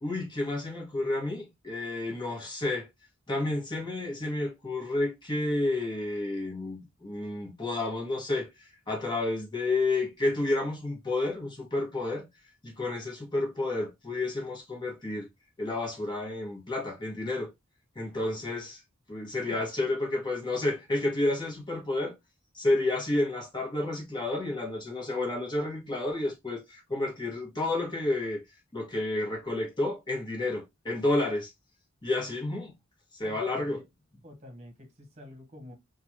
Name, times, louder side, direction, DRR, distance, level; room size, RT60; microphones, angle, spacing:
voice 1, 0.0-2.9 3.3-8.5 8.9-12.2 12.6-15.3 15.6-17.5 17.9-18.8 19.1-22.2 22.5-28.4 28.7-31.5 32.0-32.7 33.1-33.8, left 2 dB, 25° left, 1.5 m, -30 dB
voice 2, 18.1-18.5 19.4-19.6 33.2-33.8 34.2-35.7, left 1 dB, 35° right, 1.2 m, -48 dB
3.8 x 2.6 x 2.8 m
head